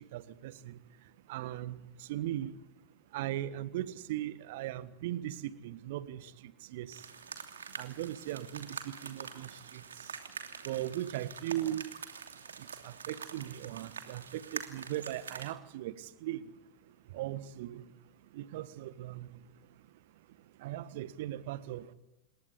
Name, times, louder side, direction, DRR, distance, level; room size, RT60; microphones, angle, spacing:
voice 1, 0.1-0.8 1.3-1.8 2.1-2.5 3.1-7.0 7.8-9.8 10.6-11.8 12.6-15.9 16.2-16.4 17.1-17.8 18.3-19.3 20.6-21.9, right 13 dB, 50° right, 1.5 m, -38 dB
sound 1, 6.9-15.5, right 6 dB, 70° right, 2.8 m, -45 dB
27.5 x 22.0 x 9.7 m
figure-of-eight pair, 90°, 0 cm